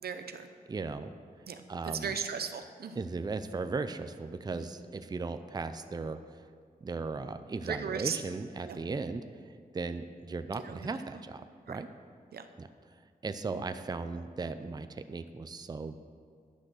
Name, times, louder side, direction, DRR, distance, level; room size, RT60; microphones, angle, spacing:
voice 1, 0.0-0.5 1.5-3.0 4.5-4.7 7.6-8.2 8.6-8.8 10.6-10.8 11.7-11.8 12.3-12.5 13.5-13.6, right 6 dB, 90° right, 8 dB, 0.7 m, -37 dB
voice 2, 0.7-1.1 1.7-2.1 3.0-6.2 6.8-9.2 9.7-11.9 12.6-12.7 13.2-16.0, right 4 dB, 25° right, 10 dB, 0.4 m, -37 dB
10.5 x 6.2 x 6.4 m, 2.1 s
wide cardioid pair, 100°, 16 cm